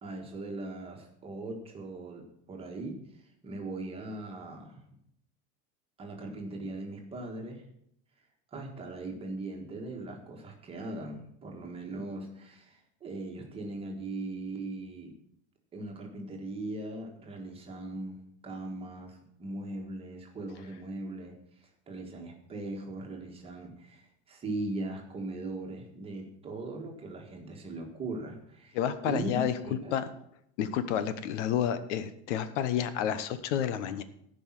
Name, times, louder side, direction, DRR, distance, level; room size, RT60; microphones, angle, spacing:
voice 1, 0.0-3.0 3.4-5.0 6.0-7.6 8.5-15.1 15.7-28.8 29.0-30.0, right 2 dB, 15° right, 2 dB, 1.6 m, -39 dB
voice 2, 28.7-29.5 29.9-30.1 30.6-34.0, left 9 dB, 75° left, 12 dB, 1.1 m, -30 dB
14.5 x 5.5 x 7.3 m, 0.72 s
cardioid pair, 180°, 35 cm